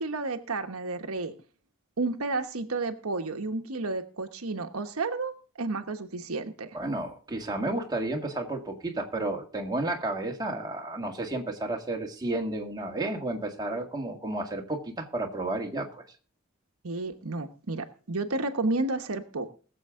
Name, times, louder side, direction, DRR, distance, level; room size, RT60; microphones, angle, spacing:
voice 1, 0.0-1.3 2.0-6.8 16.8-19.5, right 3 dB, 85° right, 6 dB, 1.2 m, -31 dB
voice 2, 6.7-16.0, right 2 dB, 20° right, 1 dB, 1.9 m, -32 dB
20.5 x 7.5 x 3.7 m, 0.39 s
head